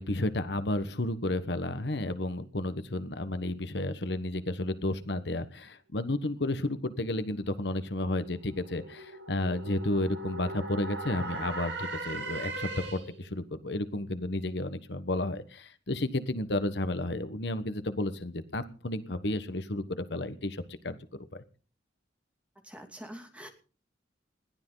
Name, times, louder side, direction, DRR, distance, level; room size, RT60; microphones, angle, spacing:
voice 1, 0.0-21.0 21.3-21.4, left 1 dB, 65° left, 11 dB, 1.2 m, -32 dB
sound 1, 7.2-13.3, right 2 dB, 75° right, 5.6 m, -40 dB
voice 2, 22.6-23.5, equal, 5° right, 4 dB, 2.7 m, -45 dB
21.0 x 15.0 x 4.0 m, 0.40 s
head